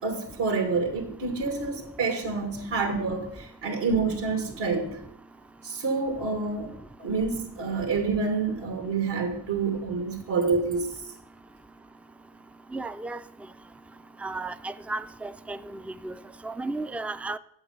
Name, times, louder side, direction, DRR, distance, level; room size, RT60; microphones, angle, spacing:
voice 1, 0.0-5.0 5.6-6.7 7.0-10.9, right 4 dB, 75° right, 2.9 m, -28 dB
voice 2, 12.7-13.2 14.2-15.6 16.0-16.1 16.4-17.4, right 2 dB, 5° right, 0.4 m, -33 dB
8.7 x 7.0 x 8.2 m
supercardioid pair, 60°, 44 cm